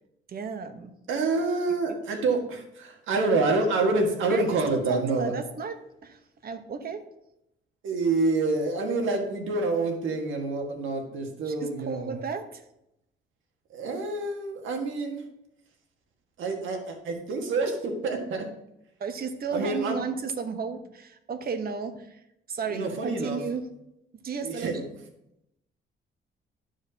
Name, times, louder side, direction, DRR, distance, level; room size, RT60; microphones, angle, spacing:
voice 1, 0.3-0.9 4.3-7.0 11.4-12.6 19.0-22.2 22.5-23.7 24.1-24.9, right 5 dB, 50° right, 8 dB, 1.0 m, -34 dB
voice 2, 1.1-5.4 7.8-12.1 13.7-15.2 16.4-18.5 19.5-20.0 22.7-23.4 24.4-24.8, right 3 dB, 80° right, 2 dB, 1.7 m, -27 dB
12.0 x 4.9 x 2.8 m, 0.82 s
cardioid pair, 90°, 20 cm